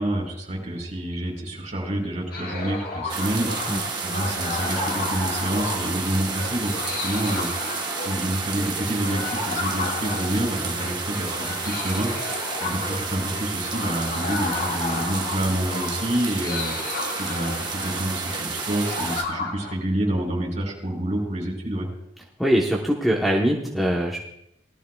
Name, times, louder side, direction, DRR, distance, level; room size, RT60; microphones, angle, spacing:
voice 1, 0.0-6.7 7.0-7.5 8.0-12.1 12.6-16.7 17.1-21.9, right 1 dB, 40° right, -2 dB, 4.3 m, -28 dB
sound 1, 2.3-19.7, left 3 dB, 55° left, 1.3 m, -35 dB
sound 2, 2.5-18.4, left 3 dB, 40° left, 0.9 m, -37 dB
sound 3, 3.1-19.2, right 4 dB, 25° right, 1.1 m, -31 dB
voice 2, 22.4-24.2, equal, ahead, -4 dB, 1.0 m, -22 dB
19.0 x 13.0 x 2.3 m, 0.80 s
head